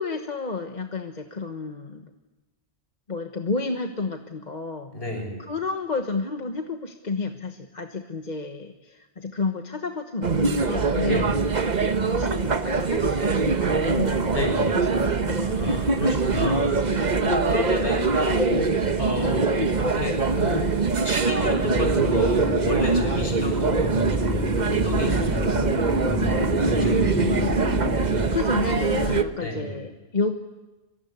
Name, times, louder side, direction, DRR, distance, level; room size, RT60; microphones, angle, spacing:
voice 1, 0.0-2.1 3.1-4.9 5.4-11.5 12.2-14.2 14.7-15.6 24.7-24.9 26.6-27.6 28.3-30.3, left 4 dB, 40° left, 5 dB, 1.3 m, -31 dB
voice 2, 4.9-5.4 11.0-11.4 14.3-14.8 15.4-16.8 17.2-20.7 21.0-24.4 24.7-25.5 26.8-27.5 29.4-29.8, left 1 dB, 55° left, 3 dB, 7.3 m, -30 dB
sound 1, 10.2-29.2, right 4 dB, 40° right, 1.2 m, -23 dB
sound 2, 21.4-28.3, equal, 15° left, 3.9 m, -28 dB
24.5 x 24.0 x 9.7 m, 1.1 s
omnidirectional pair, 1.2 m